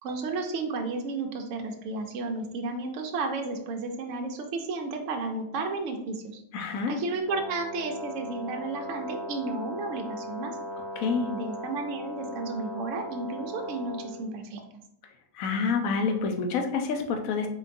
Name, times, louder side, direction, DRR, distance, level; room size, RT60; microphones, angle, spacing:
voice 1, 0.0-6.4 6.9-10.6 11.3-14.6, right 3 dB, 65° right, 3 dB, 0.8 m, -33 dB
voice 2, 6.5-7.0 10.8-11.3 15.3-17.5, left 5 dB, 70° left, 4 dB, 1.0 m, -28 dB
Brass instrument, 7.2-14.2, left 1 dB, ahead, 0.6 m, -38 dB
3.8 x 3.8 x 2.5 m, 0.78 s
omnidirectional pair, 1.6 m